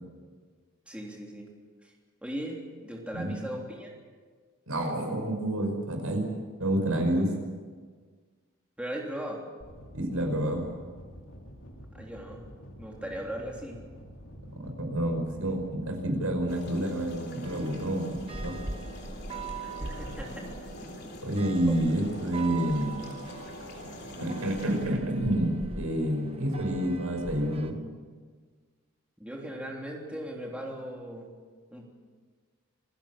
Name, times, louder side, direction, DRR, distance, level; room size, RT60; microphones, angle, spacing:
voice 1, 0.9-1.5 1.8-1.9 2.2-3.9 8.8-9.4 11.9-12.4 12.8-13.8 19.8-20.5 20.8-21.1 21.7-21.8 29.2-31.3 31.7-31.9, equal, 5° right, -1 dB, 3.3 m, -38 dB
voice 2, 4.7-6.3 6.6-7.3 9.9-10.6 14.8-18.6 21.2-23.1 24.2-27.8, right 1 dB, 80° right, 3 dB, 5.5 m, -28 dB
sound 1, 9.6-17.2, equal, 70° left, 2.9 m, -48 dB
sound 2, 16.5-24.9, left 1 dB, 50° left, 3.5 m, -44 dB
sound 3, 17.4-27.7, right 3 dB, 25° right, 1.1 m, -41 dB
27.0 x 15.5 x 7.4 m, 1.5 s
head